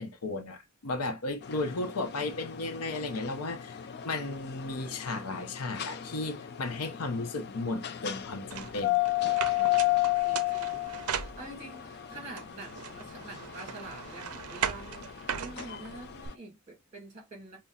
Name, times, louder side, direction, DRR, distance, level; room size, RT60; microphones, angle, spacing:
voice 1, 0.0-3.8 4.0-9.0, left 2 dB, 85° left, 0.7 m, -34 dB
sound 1, 1.4-16.3, left 16 dB, 45° left, 0.3 m, -34 dB
sound 2, 8.5-11.9 12.4-16.3, right 8 dB, 85° right, 0.5 m, -38 dB
voice 2, 9.5-17.6, right 2 dB, 30° right, 2.0 m, -47 dB
5.5 x 2.0 x 2.3 m
head